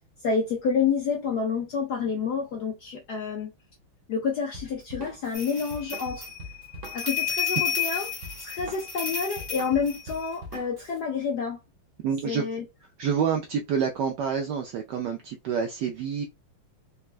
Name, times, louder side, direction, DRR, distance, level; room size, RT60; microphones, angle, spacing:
voice 1, 0.2-3.5 4.1-6.3 6.9-8.1 8.4-11.6 12.2-12.6, left 5 dB, 75° left, 0.9 m, -28 dB
Drum kit, 4.5-11.0, equal, 60° right, 1.4 m, -43 dB
Ghonta Dhony, 5.3-10.5, left 7 dB, 20° left, 0.6 m, -31 dB
voice 2, 12.0-12.5 13.0-16.2, right 7 dB, 80° right, 0.9 m, -28 dB
4.2 x 2.3 x 2.4 m
omnidirectional pair, 2.4 m